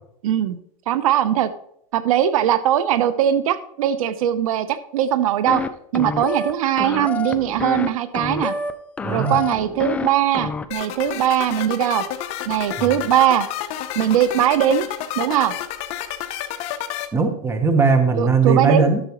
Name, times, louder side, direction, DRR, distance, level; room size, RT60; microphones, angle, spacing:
voice 1, 0.2-0.6 0.9-1.5 1.9-5.6 5.9-8.5 9.1-12.0 12.5-13.5 14.0-14.9 15.2-15.5 18.2-18.9, right 10 dB, 70° right, 13 dB, 0.7 m, -20 dB
sound 1, 5.5-5.7 5.9-6.5 6.8-7.9 8.1-8.7 9.0-10.1 10.3-10.7, left 4 dB, 5° left, 0.3 m, -27 dB
voice 2, 9.0-9.4 12.8-12.9 17.1-19.0, right 4 dB, 15° right, 7 dB, 1.0 m, -18 dB
sound 2, 10.7-17.1, left 11 dB, 35° left, 0.8 m, -30 dB
12.0 x 6.7 x 3.0 m, 0.72 s
supercardioid pair, 150°, 19 cm